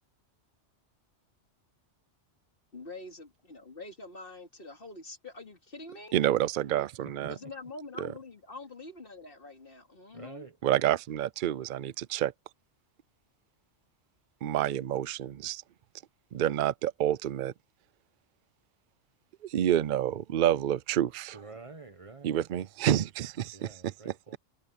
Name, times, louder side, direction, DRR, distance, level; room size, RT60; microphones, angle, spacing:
voice 1, 2.7-6.1 7.3-10.5, left 3 dB, 50° left, 2.7 m, -45 dB
voice 2, 6.1-7.3 8.0-8.1 10.6-12.3 14.4-15.6 16.3-17.5 19.4-21.4 22.2-24.1, right 11 dB, 55° right, 0.6 m, -28 dB
voice 3, 10.1-10.6 21.3-22.5 23.5-24.4, right 4 dB, 30° right, 1.2 m, -47 dB
omnidirectional pair, 1.2 m